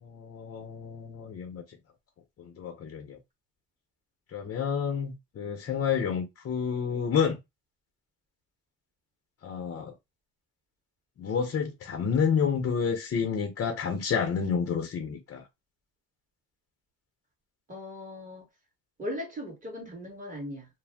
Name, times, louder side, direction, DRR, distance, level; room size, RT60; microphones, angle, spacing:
voice 1, 0.0-1.6 2.4-3.2 4.3-7.4 9.4-9.9 11.2-15.4, left 6 dB, 40° left, 0.6 m, -29 dB
voice 2, 17.7-18.4 19.0-20.7, left 1 dB, 25° right, 1.4 m, -38 dB
2.6 x 2.0 x 3.3 m
cardioid pair, 120°, 33 cm